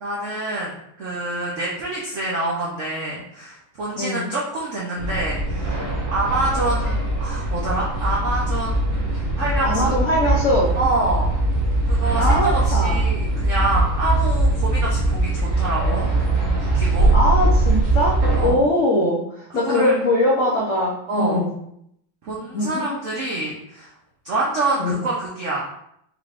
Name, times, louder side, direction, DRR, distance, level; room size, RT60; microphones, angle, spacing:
voice 1, 0.0-5.8 6.1-10.0 10.7-11.3 11.9-16.1 16.6-17.1 18.3-18.6 19.6-20.0 21.1-21.4 22.2-23.9 24.2-25.7, right 2 dB, 90° right, -4 dB, 0.6 m, -26 dB
voice 2, 3.9-4.3 9.6-10.7 12.2-13.0 17.1-21.6 22.5-22.8 24.8-25.1, left 1 dB, 70° left, -4 dB, 0.7 m, -21 dB
sound 1, 5.0-18.5, right 2 dB, 70° right, 1.7 m, -21 dB
5.3 x 3.4 x 2.4 m, 0.74 s
omnidirectional pair, 2.3 m